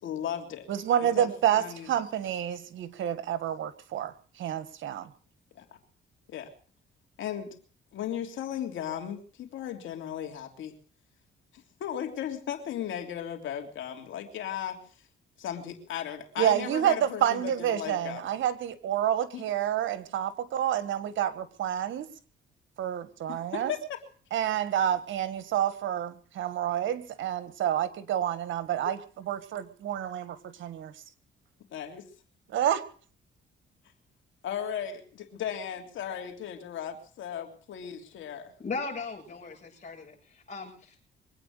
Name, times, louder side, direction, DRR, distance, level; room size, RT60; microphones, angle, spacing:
voice 1, 0.0-0.7 1.2-1.9 5.5-5.6 6.3-6.5 7.2-7.5 7.9-10.7 11.8-14.8 15.4-18.3 19.3-19.4 23.3-24.0 28.8-29.0 31.7-32.1 34.4-38.5, left 9 dB, 75° left, 5 dB, 3.2 m, -36 dB
voice 2, 0.7-5.1 16.4-22.1 22.8-23.7 24.3-29.0 29.2-30.9 32.5-32.8, right 10 dB, 75° right, 13 dB, 1.6 m, -29 dB
voice 3, 38.6-41.0, left 4 dB, 35° left, -1 dB, 7.6 m, -38 dB
24.0 x 9.1 x 6.6 m, 0.43 s
cardioid pair, 90°, 20 cm